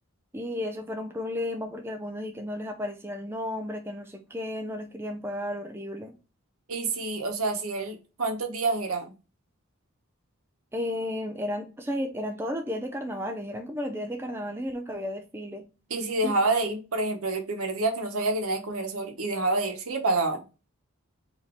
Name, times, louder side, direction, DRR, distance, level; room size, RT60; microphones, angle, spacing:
voice 1, 0.3-6.1 10.7-15.7 16.2-16.5, left 1 dB, 10° right, 0.4 m, -33 dB
voice 2, 6.7-9.1 15.9-20.4, right 2 dB, 80° right, 1.0 m, -28 dB
4.0 x 2.7 x 4.4 m
head